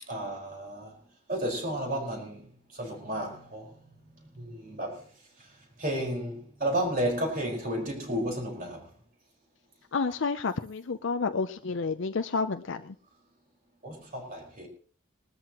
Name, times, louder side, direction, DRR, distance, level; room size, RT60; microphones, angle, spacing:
voice 1, 0.1-1.0 1.3-2.5 2.8-3.7 4.3-5.0 5.4-5.5 5.8-8.9 13.8-14.7, right 1 dB, 40° right, 4.9 m, -32 dB
voice 2, 9.9-13.0, left 4 dB, 60° left, 0.6 m, -30 dB
21.0 x 13.5 x 3.0 m
head